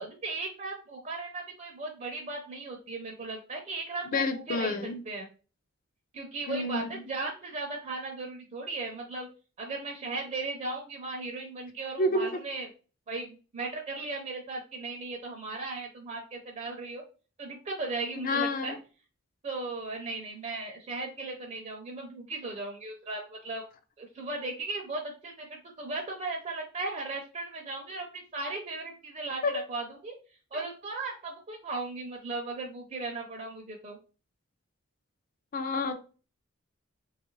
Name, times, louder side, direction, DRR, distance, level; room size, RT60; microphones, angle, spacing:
voice 1, 0.0-5.3 6.1-9.3 9.6-12.7 13.1-17.0 17.4-18.8 19.4-23.6 24.0-30.2 30.5-34.0, right 3 dB, 35° right, 0.5 m, -37 dB
voice 2, 4.1-5.0 6.5-7.0 12.0-12.4 18.2-18.8 29.4-29.6 35.5-35.9, left 2 dB, 45° left, 0.4 m, -29 dB
3.0 x 2.4 x 3.0 m
head